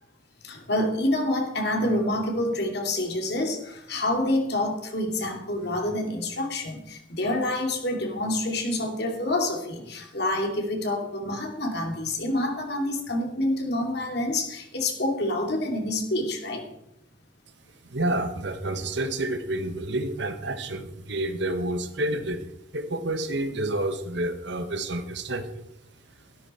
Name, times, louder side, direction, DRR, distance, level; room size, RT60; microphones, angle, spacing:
voice 1, 0.4-16.7, left 1 dB, 55° left, 3 dB, 2.7 m, -27 dB
voice 2, 17.8-25.6, right 1 dB, 60° right, 8 dB, 1.4 m, -29 dB
14.0 x 12.5 x 4.4 m, 0.79 s
head